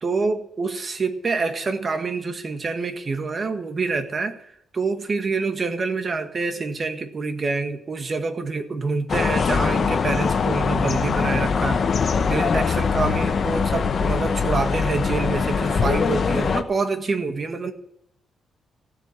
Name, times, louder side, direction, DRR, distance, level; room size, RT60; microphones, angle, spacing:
voice 1, 0.0-17.7, right 4 dB, 35° right, 7 dB, 1.6 m, -26 dB
sound 1, 9.1-16.6, left 5 dB, 45° left, 1.0 m, -22 dB
15.5 x 8.1 x 8.4 m, 0.74 s
cardioid pair, 135°, 0 cm